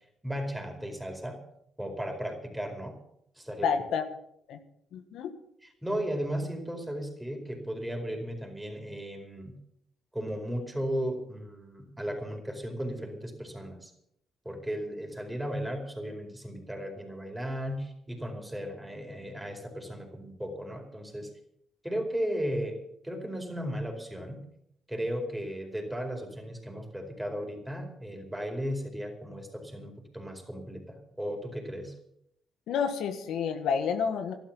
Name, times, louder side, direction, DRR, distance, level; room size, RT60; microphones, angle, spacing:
voice 1, 0.2-1.4 1.8-2.9 3.4-3.7 5.6-9.5 10.1-13.9 14.4-21.3 21.8-24.4 24.9-31.9, equal, 10° right, 3 dB, 4.6 m, -35 dB
voice 2, 3.6-4.0 4.5-4.6 4.9-5.3 32.7-34.3, left 6 dB, 80° left, 7 dB, 1.5 m, -29 dB
13.0 x 12.0 x 7.4 m, 0.73 s
cardioid pair, 90°, 0 cm